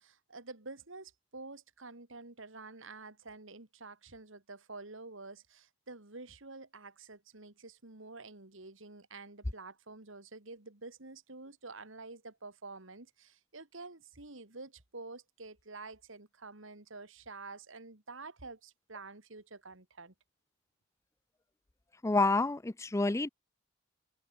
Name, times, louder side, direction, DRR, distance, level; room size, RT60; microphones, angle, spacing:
voice 1, 0.0-20.1, right 3 dB, 65° right, 2.5 m, -49 dB
voice 2, 22.0-23.3, left 3 dB, 15° left, 0.4 m, -28 dB
head